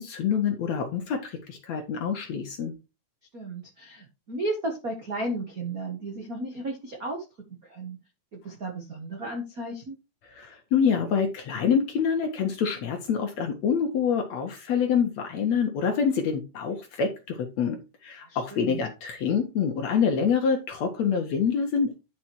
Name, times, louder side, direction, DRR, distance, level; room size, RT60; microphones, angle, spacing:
voice 1, 0.0-2.7 10.3-21.9, left 6 dB, 60° left, 4 dB, 1.9 m, -26 dB
voice 2, 3.3-7.2 7.7-8.0 8.4-10.0 18.2-18.8, right 2 dB, 90° right, 1 dB, 0.7 m, -34 dB
10.0 x 5.1 x 4.6 m, 0.27 s
omnidirectional pair, 4.5 m